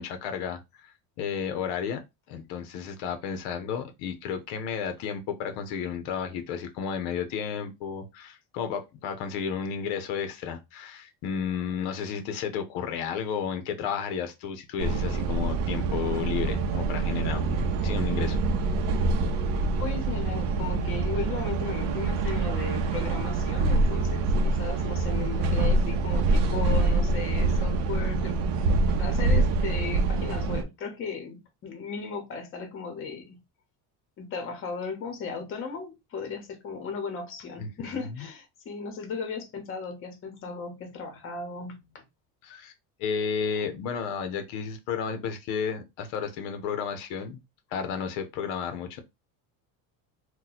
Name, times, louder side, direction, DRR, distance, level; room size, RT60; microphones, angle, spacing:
voice 1, 0.0-2.0 2.3-18.4 37.6-38.3 42.4-42.7 43.0-47.4 47.7-49.0, left 7 dB, 85° left, 0.7 m, -32 dB
sound 1, 14.8-30.6, right 3 dB, 60° right, 0.6 m, -25 dB
voice 2, 19.8-28.4 28.9-33.4 34.2-42.0, left 5 dB, 35° left, 0.9 m, -36 dB
2.8 x 2.2 x 3.9 m
cardioid pair, 165°, 38 cm